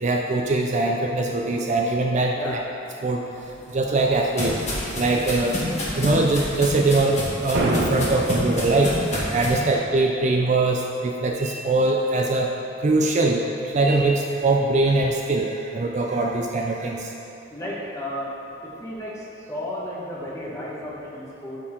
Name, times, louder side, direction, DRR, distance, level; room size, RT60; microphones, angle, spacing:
voice 1, 0.0-2.6 3.0-3.2 3.7-4.6 4.9-5.6 6.0-9.0 9.3-12.5 12.8-17.1, right 2 dB, 35° right, 1 dB, 0.4 m, -22 dB
sound 1, 3.5-9.6, left 1 dB, 35° left, 1.7 m, -29 dB
sound 2, 7.5-8.6, right 1 dB, 55° right, 0.9 m, -24 dB
voice 2, 17.5-18.4 18.6-21.6, left 1 dB, 15° left, -6 dB, 1.4 m, -33 dB
12.5 x 4.4 x 3.8 m, 2.9 s
head